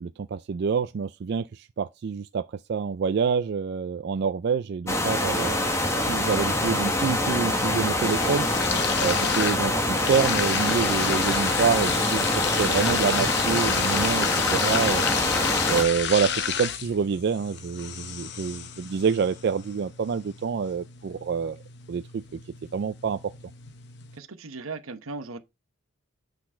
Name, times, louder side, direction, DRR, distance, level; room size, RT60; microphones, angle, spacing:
voice 1, 0.0-5.5 6.1-8.5 9.0-15.0 15.6-21.6 21.9-22.2 22.7-23.2, right 6 dB, 55° right, 0.3 m, -27 dB
sound 1, 4.9-15.8, left 1 dB, 15° left, 1.2 m, -25 dB
sound 2, 6.8-24.2, left 8 dB, 55° left, 0.7 m, -32 dB
voice 2, 24.2-25.4, right 3 dB, 90° right, 1.0 m, -37 dB
8.6 x 4.0 x 4.4 m
head